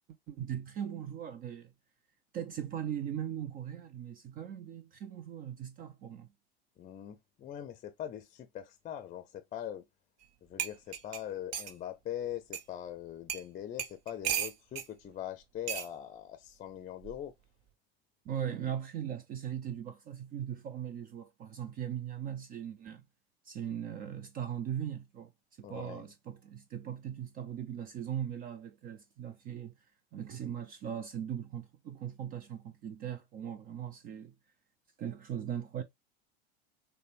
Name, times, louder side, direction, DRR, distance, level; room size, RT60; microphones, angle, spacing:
voice 1, 0.3-1.7 2.3-6.3 18.3-23.1 23.4-25.3 25.6-29.7 30.1-34.3 35.0-35.8, right 9 dB, 30° right, 0.5 m, -39 dB
voice 2, 6.8-9.9 10.4-17.3 25.6-26.1, left 10 dB, 25° left, 0.6 m, -42 dB
sound 1, 10.2-10.3 10.6-11.8 12.5-12.6 13.3-13.5 13.8-14.9 15.7-15.9 17.0-17.3, right 9 dB, 50° right, 0.9 m, -35 dB
6.5 x 2.2 x 3.3 m
figure-of-eight pair, 75°, 31 cm